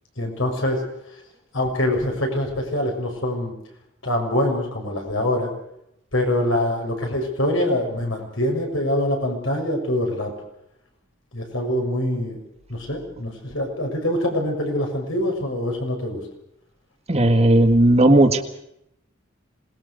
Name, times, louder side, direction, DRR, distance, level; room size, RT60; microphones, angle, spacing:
voice 1, 0.2-0.8 1.5-3.5 4.0-5.5 6.1-10.3 11.3-12.4 12.7-16.2, left 1 dB, 85° left, 2 dB, 6.8 m, -24 dB
voice 2, 17.1-18.4, right 1 dB, 35° right, 6 dB, 1.9 m, -15 dB
27.0 x 20.0 x 6.6 m, 0.79 s
head